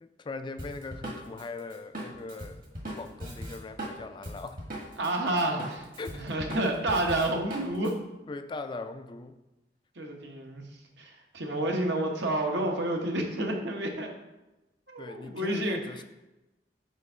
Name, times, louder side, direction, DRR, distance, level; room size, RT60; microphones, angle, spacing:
voice 1, 0.0-2.6 2.9-4.6 6.0-6.3 8.3-9.4 15.0-16.0, left 3 dB, 25° left, 9 dB, 0.3 m, -40 dB
Drum kit, 0.6-5.1 5.4-7.9, right 1 dB, 50° right, 1.4 m, -39 dB
voice 2, 5.0-7.9 9.9-14.1 14.9-15.8, right 1 dB, 80° right, 1 dB, 1.1 m, -30 dB
5.1 x 4.4 x 5.5 m, 1.0 s
head